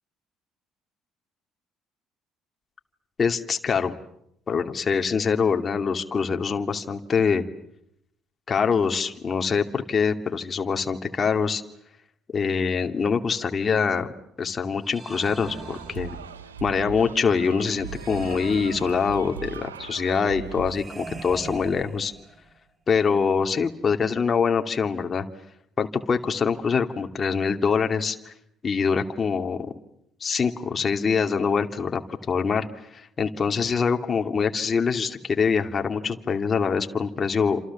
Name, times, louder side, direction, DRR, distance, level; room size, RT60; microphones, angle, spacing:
voice 1, 3.2-3.9 4.5-7.4 8.5-11.6 12.3-14.1 14.4-16.2 16.6-22.1 22.9-25.3 25.8-28.3 28.6-29.7 30.2-32.0 32.3-32.7 32.9-37.6, left 5 dB, 35° left, 5 dB, 2.6 m, -24 dB
sound 1, 14.8-16.5 17.8-19.5 20.7-22.6, right 3 dB, 30° right, 5.1 m, -41 dB
sound 2, 15.5-20.8, right 9 dB, 90° right, 1.2 m, -39 dB
29.5 x 27.5 x 7.3 m, 0.76 s
hypercardioid pair, 55°, 0 cm